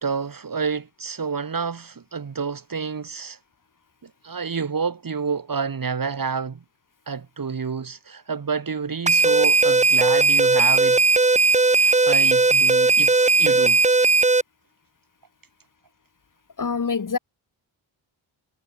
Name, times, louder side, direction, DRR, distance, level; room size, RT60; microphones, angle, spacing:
voice 1, 0.0-3.4 4.0-6.6 7.1-11.0 11.8-13.8, right 5 dB, 45° right, 1.2 m, -29 dB
sound 1, 9.1-14.4, right 3 dB, 15° right, 0.6 m, -17 dB
voice 2, 16.6-17.2, left 5 dB, 40° left, 1.1 m, -25 dB
wide cardioid pair, 85°, 48 cm